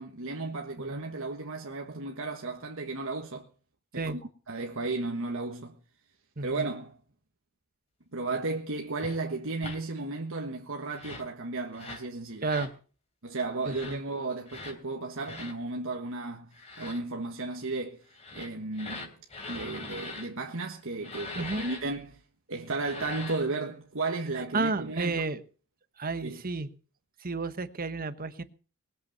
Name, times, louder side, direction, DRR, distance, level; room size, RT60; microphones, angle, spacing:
voice 1, 0.0-3.5 3.9-4.2 4.5-5.8 6.4-7.0 8.1-12.5 13.2-16.5 16.8-18.0 18.3-19.1 19.5-22.2 22.5-25.2 26.2-26.4, right 3 dB, 60° right, 1.5 m, -34 dB
voice 2, 6.4-6.7 12.4-12.7 13.7-14.0 21.4-21.6 24.5-25.4 26.0-26.7 27.2-28.4, right 3 dB, 40° right, 1.2 m, -31 dB
sound 1, 9.0-9.2 9.6-9.8 10.9-11.3 11.7-12.1 12.4-12.7 13.6-14.0 14.5-14.8 15.2-15.5 16.5-17.0 18.1-20.3 21.0-21.8 22.7-23.5, left 3 dB, 30° left, 3.4 m, -42 dB
20.5 x 8.2 x 6.9 m
head